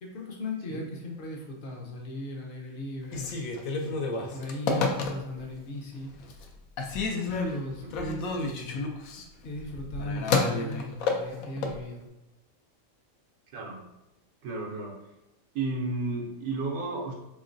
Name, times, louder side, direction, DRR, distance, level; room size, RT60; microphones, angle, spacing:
voice 1, 0.0-3.3 3.7-6.1 7.0-8.9 9.4-12.1, left 2 dB, 50° left, 1 dB, 0.6 m, -37 dB
Telephone, 3.0-5.5 6.0-6.5 6.8-11.8, left 3 dB, 80° left, 1.0 m, -30 dB
voice 2, 14.4-14.9 15.5-17.1, right 3 dB, 80° right, -1 dB, 1.0 m, -32 dB
3.6 x 3.1 x 2.5 m, 0.95 s
omnidirectional pair, 1.5 m